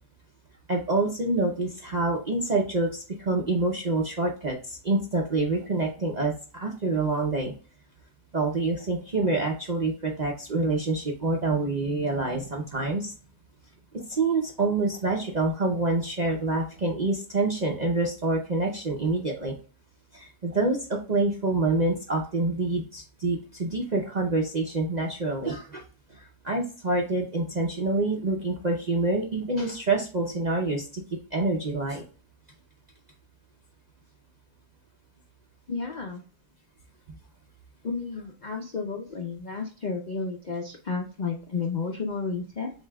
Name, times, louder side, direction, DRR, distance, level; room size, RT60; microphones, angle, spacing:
voice 1, 0.7-7.5 8.3-13.1 14.1-19.5 20.1-25.8 26.1-31.0 31.3-32.0, right 2 dB, 50° right, -1 dB, 0.5 m, -27 dB
voice 2, 35.7-36.2 37.8-42.7, left 4 dB, 80° left, 2 dB, 0.4 m, -32 dB
7.4 x 2.7 x 2.2 m, 0.38 s
omnidirectional pair, 1.7 m